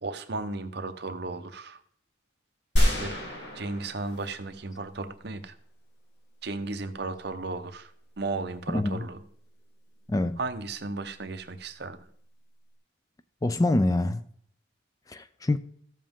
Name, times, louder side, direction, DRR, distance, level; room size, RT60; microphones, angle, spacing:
voice 1, 0.0-1.8 2.8-3.1 3.5-5.6 6.4-9.2 10.4-12.0, right 3 dB, 55° right, 0.8 m, -35 dB
sound 1, 2.8-5.0, equal, 60° left, 2.7 m, -27 dB
voice 2, 8.7-9.0 10.1-10.4 13.4-14.2 15.1-15.6, left 2 dB, 15° left, 0.3 m, -25 dB
13.5 x 7.4 x 3.7 m
head